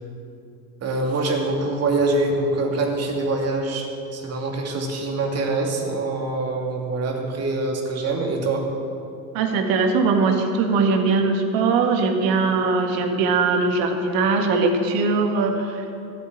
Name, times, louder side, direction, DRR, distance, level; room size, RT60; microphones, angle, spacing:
voice 1, 0.8-8.6, right 2 dB, 35° right, 1 dB, 2.6 m, -24 dB
voice 2, 9.3-15.8, right 4 dB, 50° right, 4 dB, 1.9 m, -21 dB
16.0 x 8.2 x 7.3 m, 2.6 s
figure-of-eight pair, 75°, 45 cm